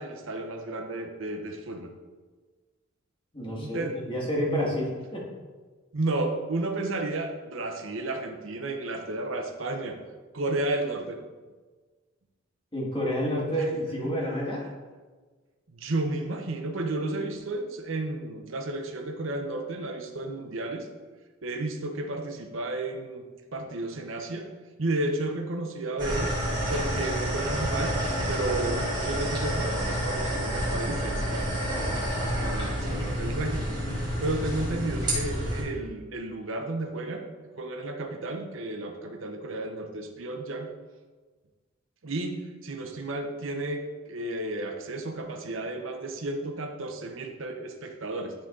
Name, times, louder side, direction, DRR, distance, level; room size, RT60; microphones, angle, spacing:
voice 1, 0.0-1.9 3.5-4.0 4.5-4.7 5.9-10.0 10.3-11.2 15.7-20.9 21.4-23.3 23.5-24.5 24.8-26.3 26.7-28.0 28.3-31.6 32.2-37.3 37.6-40.7 42.0-48.3, right 2 dB, 75° right, 4 dB, 0.8 m, -32 dB
voice 2, 3.3-5.3 12.7-14.6, equal, 25° left, -3 dB, 1.8 m, -29 dB
sound 1, 26.0-35.6, equal, 20° right, 2.1 m, -29 dB
11.5 x 3.9 x 3.7 m, 1.4 s
head